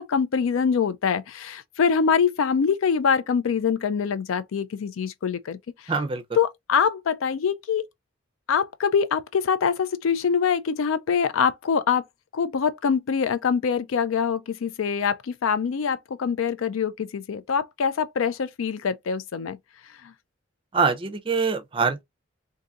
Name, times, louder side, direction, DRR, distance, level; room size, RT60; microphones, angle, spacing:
voice 1, 0.0-5.6 5.8-6.0 6.3-7.8 8.5-12.0 12.3-19.6 20.0-20.1, left 6 dB, 85° left, 0.4 m, -24 dB
voice 2, 5.9-6.2 20.7-22.0, right 5 dB, 25° right, 0.5 m, -24 dB
3.9 x 2.6 x 2.4 m
head